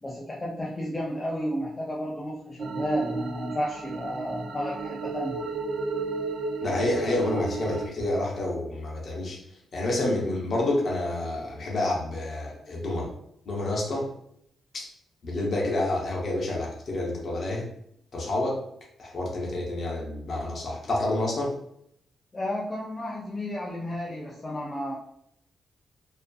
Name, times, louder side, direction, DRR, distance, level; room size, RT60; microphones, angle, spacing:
voice 1, 0.0-5.4 22.3-24.9, left 1 dB, 15° left, -4 dB, 0.3 m, -32 dB
sound 1, 2.6-7.9, right 4 dB, 65° right, 0.3 m, -33 dB
voice 2, 6.6-9.4 9.7-13.1 13.5-14.1 15.2-17.6 18.1-18.6 19.0-21.5, left 2 dB, 40° left, -2 dB, 0.7 m, -28 dB
2.5 x 2.3 x 2.2 m, 0.72 s
wide cardioid pair, 170°, 0 cm